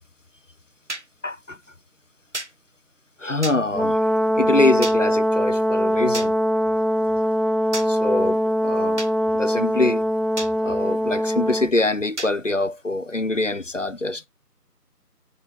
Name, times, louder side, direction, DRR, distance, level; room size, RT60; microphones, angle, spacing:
sound 1, 0.9-1.1 2.3-2.5 3.4-3.6 4.8-5.0 6.1-6.3 7.7-7.9 9.0-9.1 10.4-10.5 12.2-12.3, right 1 dB, 45° right, 0.9 m, -31 dB
voice 1, 1.2-1.6 3.2-4.1 4.4-6.3 7.8-9.0 9.3-10.0 10.6-14.3, left 2 dB, 50° left, 0.6 m, -24 dB
Brass instrument, 3.7-11.7, equal, ahead, 0.4 m, -22 dB
9.4 x 3.8 x 6.3 m
figure-of-eight pair, 175°, 48 cm